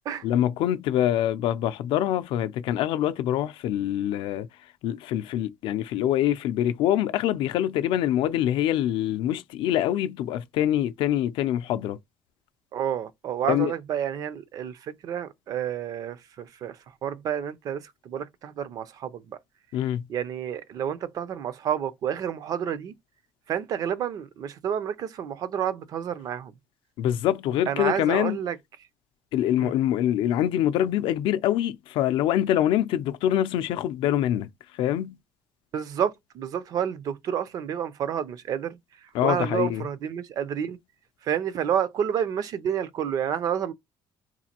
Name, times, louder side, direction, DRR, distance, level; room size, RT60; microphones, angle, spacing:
voice 1, 0.2-4.5 4.8-12.0 13.5-13.7 19.7-20.1 27.0-28.4 29.3-34.5 34.8-35.2 39.1-39.8, left 11 dB, 65° left, 0.4 m, -25 dB
voice 2, 12.7-19.4 20.1-22.9 23.5-26.5 27.7-28.6 29.6-29.7 35.7-38.8 39.2-40.8 41.2-43.7, right 9 dB, 40° right, 0.4 m, -29 dB
4.0 x 2.5 x 2.8 m
cardioid pair, 180°, 9 cm